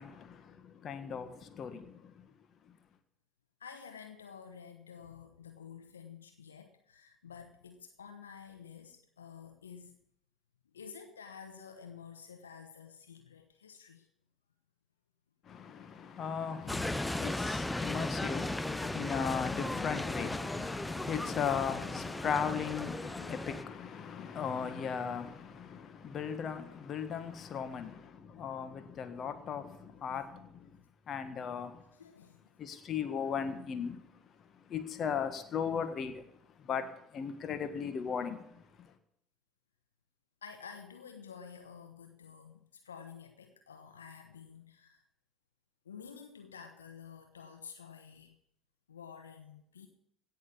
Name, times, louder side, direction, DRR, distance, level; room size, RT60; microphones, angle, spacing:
voice 1, 0.0-2.3 2.6-2.8 15.4-30.8 31.1-31.8 32.6-34.0 34.4-36.3 36.5-38.9, left 7 dB, 45° left, 1.5 m, -37 dB
voice 2, 3.6-9.9 10.7-14.1 32.0-32.8 40.4-45.0 45.8-48.4 48.9-49.9, left 7 dB, 85° left, 1.0 m, -50 dB
sound 1, 16.7-23.6, left 1 dB, 10° left, 0.5 m, -36 dB
17.0 x 6.5 x 8.4 m
figure-of-eight pair, 55°, 0 cm